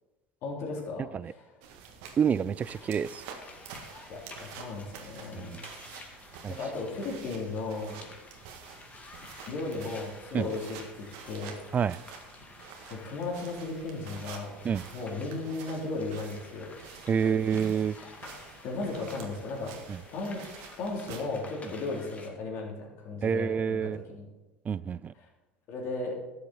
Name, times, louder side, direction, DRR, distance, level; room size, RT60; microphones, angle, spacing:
voice 1, 0.4-1.4 4.1-5.6 6.5-8.1 9.5-11.6 12.9-14.6 14.9-16.7 17.2-17.6 18.0-18.1 18.6-19.7 20.1-20.5 20.8-24.2 25.7-26.1, left 3 dB, 55° left, 3.3 m, -36 dB
sound 1, 1.6-21.2, right 6 dB, 65° right, 1.7 m, -48 dB
voice 2, 2.2-3.2 5.3-5.7 6.4-6.6 10.3-10.5 11.7-12.0 14.6-14.8 17.1-17.9 19.9-20.0 23.2-24.0 24.6-25.1, right 7 dB, 30° right, 0.4 m, -28 dB
sound 2, 2.6-22.3, left 3 dB, 25° left, 2.0 m, -51 dB
13.0 x 7.8 x 4.2 m
hypercardioid pair, 75°, 5 cm